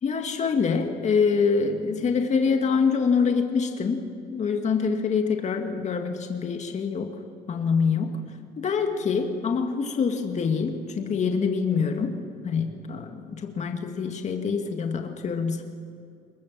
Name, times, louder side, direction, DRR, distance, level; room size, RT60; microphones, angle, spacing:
voice 1, 0.0-4.0 4.3-7.2 7.5-8.2 8.6-12.2 12.4-15.6, left 5 dB, 45° left, 4 dB, 2.2 m, -25 dB
22.0 x 22.0 x 7.5 m, 2.5 s
cardioid pair, 110°, 17 cm